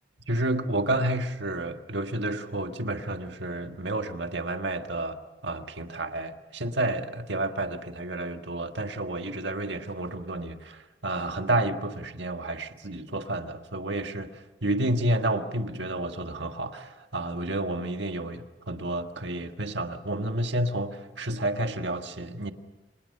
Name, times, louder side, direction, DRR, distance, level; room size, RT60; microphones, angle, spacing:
voice 1, 0.3-22.5, right 1 dB, 70° right, 1.7 m, -30 dB
29.0 x 26.5 x 5.6 m
head